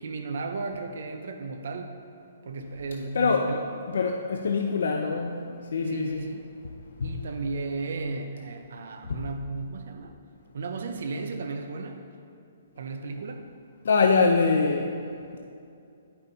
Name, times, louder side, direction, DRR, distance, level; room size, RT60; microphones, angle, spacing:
voice 1, 0.0-2.0 2.4-3.8 5.8-6.5 7.0-10.1 10.5-12.0 12.8-13.5, right 3 dB, 65° right, 6 dB, 0.6 m, -34 dB
voice 2, 3.1-3.5 3.9-5.4 5.7-6.2 7.0-7.1 9.1-9.2 13.9-14.9, left 4 dB, 75° left, 3 dB, 0.5 m, -23 dB
9.9 x 5.5 x 4.0 m, 2.5 s
hypercardioid pair, 165°, 0 cm